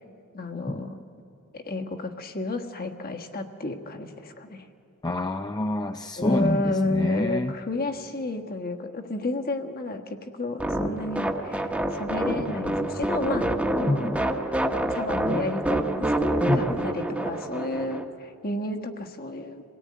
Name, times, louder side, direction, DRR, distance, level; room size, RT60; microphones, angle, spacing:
voice 1, 0.3-1.0 1.5-4.7 6.2-13.5 13.8-14.4 14.9-16.1 16.5-19.6, left 2 dB, 45° left, 5 dB, 1.4 m, -31 dB
voice 2, 5.0-7.5 13.9-14.2 16.5-16.8, left 1 dB, 20° left, 6 dB, 0.5 m, -27 dB
sound 1, 10.6-18.0, right 1 dB, 5° right, 1.2 m, -27 dB
27.0 x 18.0 x 9.5 m, 2.9 s
head